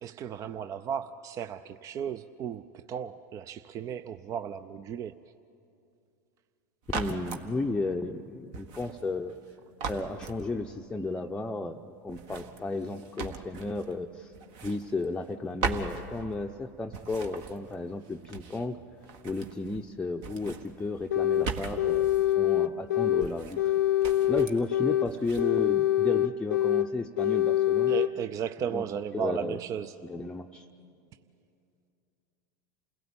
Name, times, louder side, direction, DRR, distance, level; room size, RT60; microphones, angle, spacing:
voice 1, 0.0-5.3 27.9-30.0, right 8 dB, 35° right, 12 dB, 0.5 m, -35 dB
sound 1, 6.8-7.5 8.5-9.5 9.8-10.9 12.1-14.0 14.3-15.3 15.6-16.6 16.9-18.7 19.0-19.9 20.2-22.3 23.2-23.7 24.0-24.7 25.1-25.5, right 5 dB, 55° right, 1.7 m, -39 dB
voice 2, 6.9-9.3 9.9-14.3 14.6-18.8 19.2-23.7 24.3-27.9 28.7-28.8 29.1-29.6 30.0-30.7, left 3 dB, 10° left, 2 dB, 0.7 m, -33 dB
sound 2, 21.1-21.5 21.8-23.3 23.6-25.1 25.4-26.9 27.2-28.1, left 12 dB, 90° left, 0.7 m, -25 dB
28.5 x 17.0 x 8.7 m, 2.6 s
hypercardioid pair, 110°, 10 cm